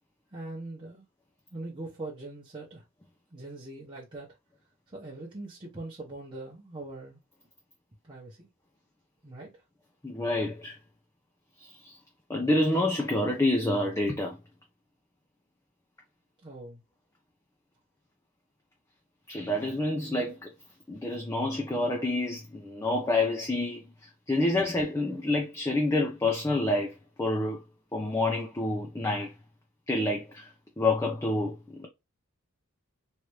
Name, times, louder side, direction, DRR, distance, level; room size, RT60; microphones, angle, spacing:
voice 1, 0.3-1.0 1.5-2.8 3.3-4.3 4.9-7.2 8.0-8.5 9.2-9.5 16.4-16.8, right 2 dB, 20° right, 0.8 m, -41 dB
voice 2, 10.0-10.8 11.6-12.0 12.3-14.4 19.3-20.5 20.9-27.6 27.9-29.3 29.9-31.9, left 2 dB, 15° left, 0.5 m, -28 dB
3.2 x 2.5 x 3.0 m
head